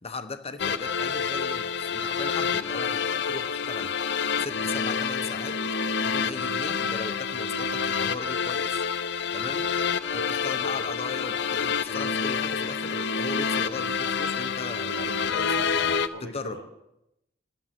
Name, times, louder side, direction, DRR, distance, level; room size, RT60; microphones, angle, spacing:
voice 1, 0.0-3.9 4.4-5.6 6.0-8.8 9.3-9.7 10.1-16.6, left 3 dB, 35° left, 9 dB, 0.8 m, -37 dB
sound 1, 0.6-16.1, left 6 dB, 65° left, 0.6 m, -28 dB
voice 2, 10.5-10.8 15.6-15.8 16.1-16.6, equal, 80° right, 0 dB, 3.2 m, -43 dB
12.5 x 8.9 x 5.7 m, 0.85 s
head